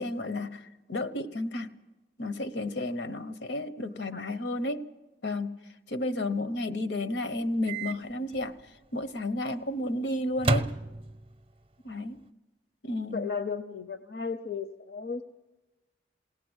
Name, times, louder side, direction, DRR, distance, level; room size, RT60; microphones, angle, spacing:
voice 1, 0.0-1.7 2.2-4.9 5.2-5.5 5.9-8.6 8.9-10.7 11.8-12.2 12.8-13.3, left 1 dB, 85° left, 10 dB, 1.1 m, -32 dB
voice 2, 3.9-4.3 13.1-15.2, left 5 dB, 65° left, 10 dB, 0.7 m, -35 dB
Microwave oven, 7.7-8.0 8.3-8.4 10.4-11.4, right 2 dB, 30° right, 0.6 m, -29 dB
21.0 x 18.0 x 8.1 m, 1.1 s
head